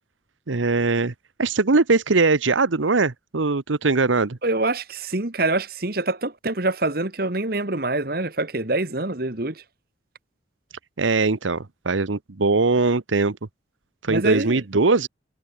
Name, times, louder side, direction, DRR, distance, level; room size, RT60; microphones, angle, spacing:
voice 1, 0.5-1.1 1.4-4.4 11.0-13.4 14.0-15.1, right 3 dB, 90° right, 1.0 m, -21 dB
voice 2, 4.4-9.6 14.1-14.6, right 2 dB, 50° right, 1.7 m, -25 dB
head